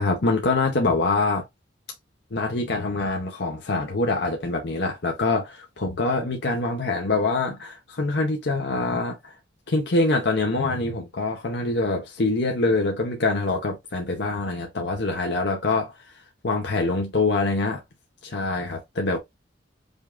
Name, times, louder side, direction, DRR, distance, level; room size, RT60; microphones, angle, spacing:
voice 1, 0.0-1.4 2.3-9.3 9.7-15.9 16.4-17.8 18.2-19.2, left 3 dB, 60° left, 0.8 m, -24 dB
5.3 x 2.5 x 2.2 m
head